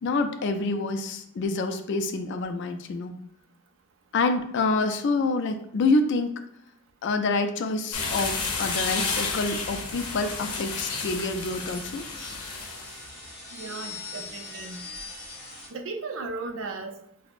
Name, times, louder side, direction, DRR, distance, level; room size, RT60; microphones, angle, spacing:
voice 1, 0.0-3.1 4.1-6.3 7.0-12.0, left 3 dB, 50° left, 7 dB, 0.3 m, -27 dB
sound 1, 7.9-13.0, left 4 dB, 80° left, 0.7 m, -32 dB
sound 2, 8.1-15.7, left 2 dB, 5° left, 1.3 m, -41 dB
voice 2, 13.5-14.8 15.7-17.0, right 3 dB, 60° right, 5 dB, 0.4 m, -36 dB
5.9 x 2.0 x 2.4 m, 0.74 s
head